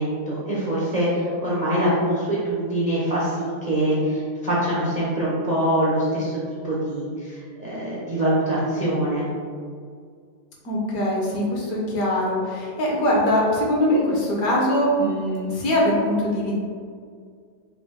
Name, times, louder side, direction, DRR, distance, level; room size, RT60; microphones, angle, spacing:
voice 1, 0.0-6.4 6.6-9.3, right 1 dB, 75° right, -8 dB, 0.3 m, -24 dB
voice 2, 10.6-16.5, left 1 dB, 65° left, -3 dB, 1.2 m, -22 dB
4.9 x 2.1 x 3.5 m, 2.1 s
omnidirectional pair, 1.8 m